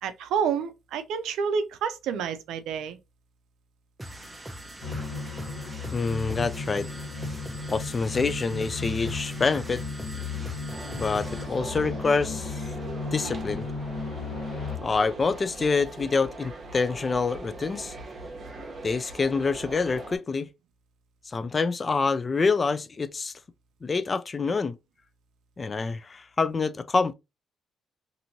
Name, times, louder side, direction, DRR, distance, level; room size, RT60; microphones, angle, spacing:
voice 1, 0.0-3.0, right 6 dB, 85° right, 0.4 m, -29 dB
sound 1, 4.0-11.6, right 1 dB, 15° right, 0.6 m, -41 dB
sound 2, 4.8-14.8, left 4 dB, 50° left, 1.0 m, -35 dB
voice 2, 5.9-6.9 7.7-9.8 10.9-12.6 13.1-13.7 14.8-18.0 18.8-20.5 21.3-23.3 23.8-24.8 25.6-27.1, left 4 dB, 35° left, 0.3 m, -26 dB
sound 3, 10.7-20.2, right 2 dB, 45° right, 0.9 m, -41 dB
2.9 x 2.6 x 2.6 m
cardioid pair, 90°, 0 cm